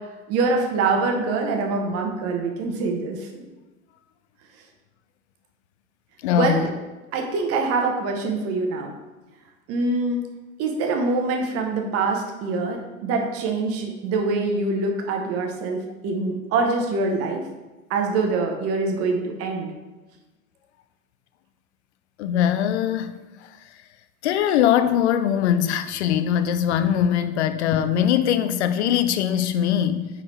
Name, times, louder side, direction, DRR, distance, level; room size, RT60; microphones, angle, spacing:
voice 1, 0.3-3.5 6.3-6.7 7.1-8.9 9.7-10.2 10.6-17.5 17.9-19.7, right 3 dB, 35° right, 2 dB, 1.0 m, -24 dB
voice 2, 6.2-6.7 22.2-23.1 24.2-30.1, left 10 dB, 50° left, 11 dB, 0.6 m, -21 dB
9.5 x 4.0 x 3.3 m, 1.1 s
figure-of-eight pair, 90°, 43 cm